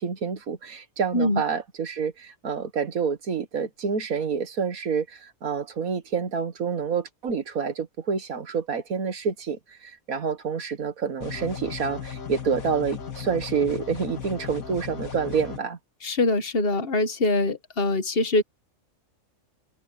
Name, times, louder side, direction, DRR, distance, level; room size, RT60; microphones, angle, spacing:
voice 1, 0.0-15.8, right 6 dB, 85° right, 2.0 m, -28 dB
sound 1, 11.2-15.6, left 7 dB, 85° left, 2.4 m, -36 dB
voice 2, 16.0-18.4, left 2 dB, 45° left, 1.5 m, -23 dB
omnidirectional pair, 1.4 m